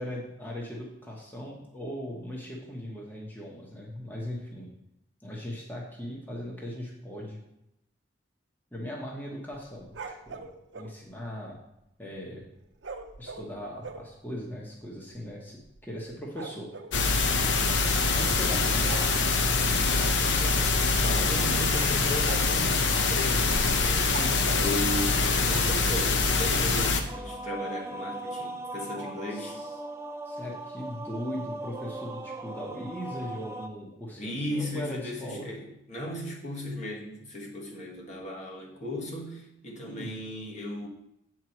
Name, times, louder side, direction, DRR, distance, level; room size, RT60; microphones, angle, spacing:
voice 1, 0.0-4.7 5.2-7.4 8.7-9.9 10.3-10.4 10.7-11.6 12.0-12.4 13.2-16.7 18.1-19.0 21.5-21.6 24.1-24.4 29.3-29.7 30.2-35.5 39.9-40.1, equal, 10° left, -3 dB, 1.2 m, -39 dB
sound 1, 9.8-11.0 12.8-14.1 14.8-14.9 15.1-15.3 15.6-17.0 18.1-18.4 18.8-19.2 20.5-20.7 21.1-21.2 21.7-21.9 22.2-22.7 24.1-24.7, right 4 dB, 80° right, 0.7 m, -41 dB
sound 2, 16.9-27.0, left 3 dB, 80° left, 0.8 m, -24 dB
voice 2, 19.9-29.6 34.2-40.9, left 1 dB, 40° left, -2 dB, 1.4 m, -36 dB
sound 3, 27.1-33.7, right 1 dB, 15° right, 0.4 m, -38 dB
8.3 x 4.7 x 5.9 m, 0.83 s
head